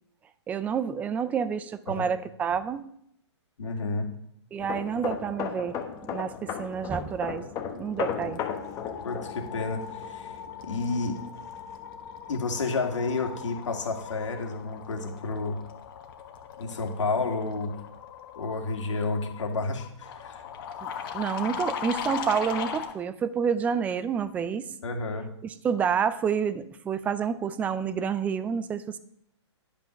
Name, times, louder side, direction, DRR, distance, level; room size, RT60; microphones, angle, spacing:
voice 1, 0.5-2.9 4.5-5.8 6.1-7.5 7.8-8.4 20.8-24.7 25.4-29.0, right 7 dB, 10° right, 14 dB, 0.3 m, -29 dB
voice 2, 3.6-4.1 9.0-10.3 10.6-11.2 12.3-15.6 16.6-17.7 18.4-20.4 24.8-25.3, left 3 dB, 80° left, 3 dB, 2.1 m, -30 dB
sound 1, 4.6-12.1 12.4-12.7, left 7 dB, 20° left, 1.0 m, -36 dB
sound 2, 7.1-7.4 7.7-23.0, left 8 dB, 45° left, 1.2 m, -39 dB
10.5 x 5.4 x 5.9 m, 0.71 s
hypercardioid pair, 145°, 15 cm